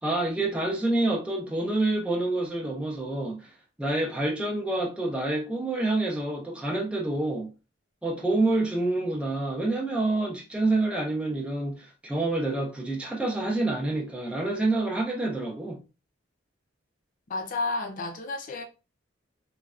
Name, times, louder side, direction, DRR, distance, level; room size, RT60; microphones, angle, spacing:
voice 1, 0.0-3.5 3.8-7.5 8.0-15.8, right 2 dB, 5° right, 0.5 m, -27 dB
voice 2, 17.3-18.6, left 3 dB, 45° left, 0.5 m, -31 dB
3.1 x 2.3 x 2.4 m
head